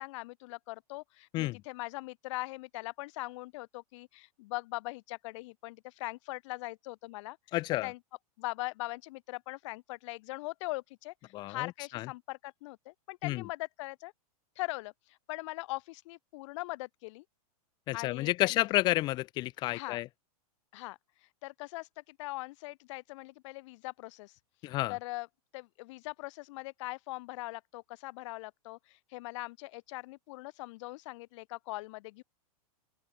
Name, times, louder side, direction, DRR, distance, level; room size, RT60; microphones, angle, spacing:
voice 1, 0.0-7.4 7.8-8.0 8.4-11.1 11.5-14.1 14.6-17.2 17.9-18.7 19.7-20.0 20.7-21.0 21.4-24.3 24.9-25.3 25.5-32.2, left 21 dB, 50° left, 1.0 m, -41 dB
voice 2, 7.5-7.9 11.3-12.1 13.2-13.5 17.9-20.1 24.6-25.0, left 17 dB, 25° left, 0.3 m, -31 dB
open air
supercardioid pair, 145°, 20 cm